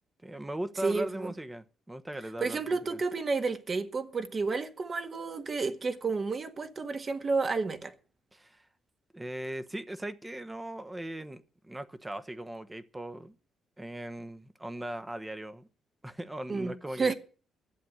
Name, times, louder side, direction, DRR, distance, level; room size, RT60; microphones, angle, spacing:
voice 1, 0.2-3.0 8.3-8.7 9.1-13.4 13.8-15.7 16.0-17.1, right 1 dB, 15° right, 1.1 m, -39 dB
voice 2, 0.8-1.3 2.4-7.9 16.5-17.1, right 4 dB, 40° right, 1.6 m, -31 dB
12.0 x 8.0 x 9.3 m
cardioid pair, 90°, 0 cm